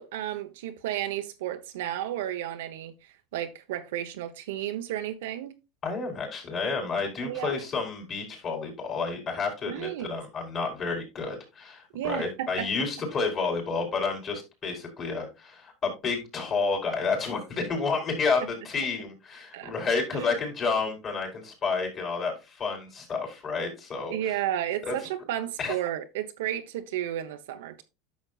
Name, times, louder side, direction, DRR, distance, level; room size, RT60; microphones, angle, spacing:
voice 1, 0.0-5.5 7.2-7.6 9.7-10.2 11.9-12.7 18.4-18.5 19.5-19.7 20.1-20.3 24.1-27.8, right 12 dB, 85° right, 1.0 m, -33 dB
voice 2, 5.8-24.2 24.8-25.0 25.6-25.7, left 4 dB, 35° left, 4.2 m, -30 dB
10.5 x 6.6 x 2.4 m
supercardioid pair, 120°, 0 cm